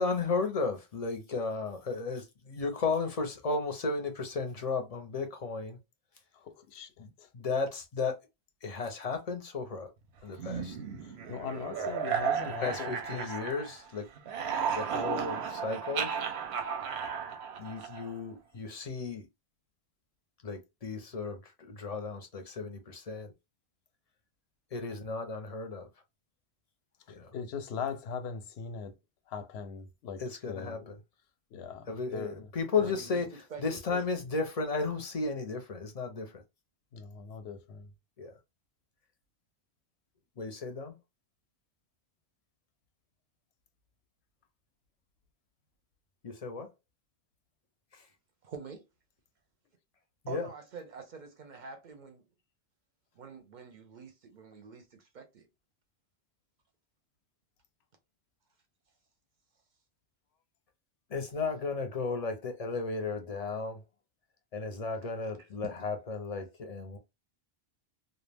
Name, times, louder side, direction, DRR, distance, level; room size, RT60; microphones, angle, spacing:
voice 1, 0.0-5.8 7.0-8.2 8.6-9.9 10.2-10.8 12.6-14.0 14.7-16.2 17.6-19.3 20.4-23.3 24.7-25.9 27.1-27.3 30.2-30.9 31.9-36.4 38.2-38.4 40.4-40.9 46.2-46.7 47.9-48.1 50.2-50.5 61.1-63.8 64.5-67.0, left 4 dB, 45° left, 0.5 m, -34 dB
voice 2, 6.3-6.9 7.2-7.3 10.4-10.6 11.0-13.4 27.3-29.0 29.3-30.2 30.5-30.9 31.5-32.5 32.8-32.9 36.9-37.9, left 6 dB, 90° left, 0.8 m, -40 dB
sound 1, 10.4-13.9 14.2-18.2, right 7 dB, 90° right, 0.8 m, -34 dB
voice 3, 32.8-33.2 33.5-34.0 48.4-48.8 50.3-52.2 53.2-55.5, right 5 dB, 60° right, 0.6 m, -46 dB
2.3 x 2.1 x 3.2 m
omnidirectional pair, 1.1 m